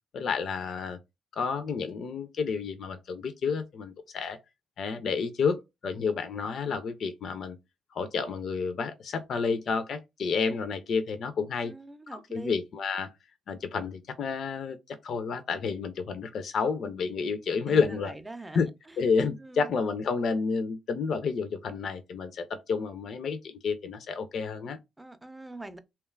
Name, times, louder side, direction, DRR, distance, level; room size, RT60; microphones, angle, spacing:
voice 1, 0.1-1.0 1.3-4.4 4.8-7.6 7.9-11.7 12.1-13.1 13.5-18.2 18.5-18.7 19.0-24.8, left 5 dB, 60° left, 0.3 m, -30 dB
voice 2, 11.6-12.5 17.7-19.0 19.4-19.7 25.0-25.8, right 2 dB, 15° right, 0.4 m, -43 dB
2.9 x 2.2 x 2.2 m
hypercardioid pair, 45°, 0 cm